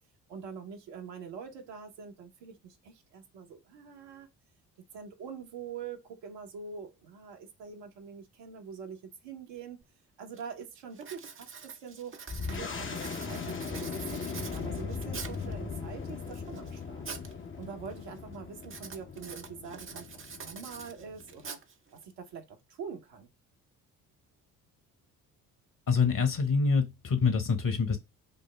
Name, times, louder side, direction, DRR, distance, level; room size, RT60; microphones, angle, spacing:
voice 1, 0.3-4.3 4.9-9.8 10.2-12.1 12.5-17.0 17.6-20.1 20.4-21.6 21.9-23.3, right 6 dB, 60° right, 1.2 m, -44 dB
Writing, 9.8-9.9 10.4-10.6 11.0-15.5 16.1-17.3 17.6-18.0 18.6-22.0, right 5 dB, 25° right, 0.8 m, -45 dB
sound 1, 12.3-21.5, left 5 dB, 25° left, 0.9 m, -39 dB
voice 2, 25.9-28.0, left 5 dB, 40° left, 1.4 m, -26 dB
5.6 x 2.0 x 3.4 m
figure-of-eight pair, 45°, 48 cm